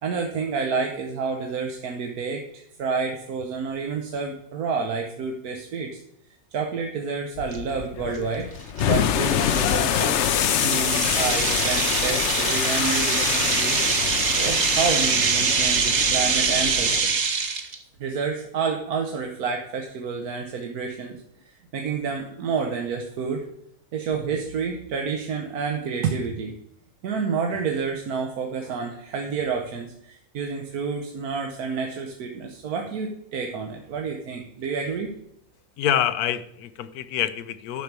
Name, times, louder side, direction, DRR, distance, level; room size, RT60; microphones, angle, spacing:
voice 1, 0.0-6.0 6.5-8.5 8.8-13.8 14.3-17.2 18.0-21.2 21.7-23.5 23.9-26.5 27.0-35.1, right 5 dB, 80° right, 3 dB, 1.4 m, -29 dB
sound 1, 7.4-17.0, left 9 dB, 65° left, 0.8 m, -26 dB
sound 2, 7.5-7.6 8.2-8.3 8.8-8.9 9.4-17.7, right 5 dB, 60° right, 1.4 m, -24 dB
voice 2, 35.8-37.8, left 10 dB, 85° left, 14 dB, 1.2 m, -26 dB
11.0 x 4.6 x 6.7 m, 0.73 s
omnidirectional pair, 1.6 m